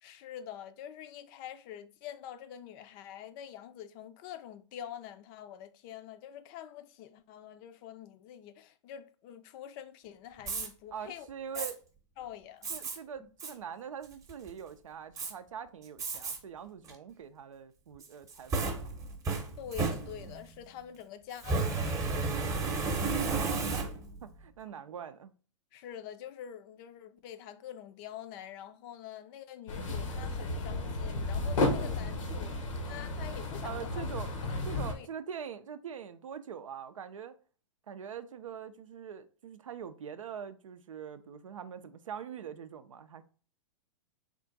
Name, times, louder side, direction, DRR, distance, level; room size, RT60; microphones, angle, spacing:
voice 1, 0.0-11.3 11.6-11.7 12.2-12.7 13.2-13.3 19.6-22.4 25.7-34.1 34.9-35.1, left 10 dB, 40° left, 0.5 m, -46 dB
Fire, 10.4-10.7 11.5-11.7 12.6-13.0 13.4-13.5 14.0-14.5 15.2-15.3 16.0-16.4 16.8-16.9 18.0-20.5 21.4-24.2, right 3 dB, 20° right, 0.8 m, -33 dB
voice 2, 10.9-11.8 12.7-18.9 23.3-23.9 24.2-25.3 33.6-34.3 34.7-37.3 37.9-43.2, right 8 dB, 85° right, 0.4 m, -43 dB
sound 1, 29.7-34.9, left 2 dB, 80° left, 0.9 m, -33 dB
3.7 x 2.4 x 3.8 m
hypercardioid pair, 115°, 16 cm